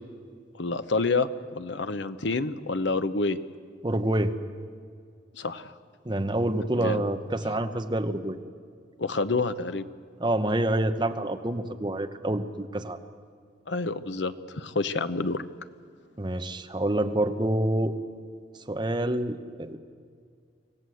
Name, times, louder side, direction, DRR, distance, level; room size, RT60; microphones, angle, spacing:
voice 1, 0.6-3.4 5.3-5.7 6.7-7.0 9.0-9.8 13.7-15.4, left 3 dB, 70° left, 11 dB, 0.9 m, -28 dB
voice 2, 3.8-4.3 6.0-8.4 10.2-13.0 16.2-17.9 18.7-19.8, right 1 dB, 25° right, 7 dB, 1.0 m, -27 dB
25.5 x 17.0 x 7.9 m, 2.2 s
head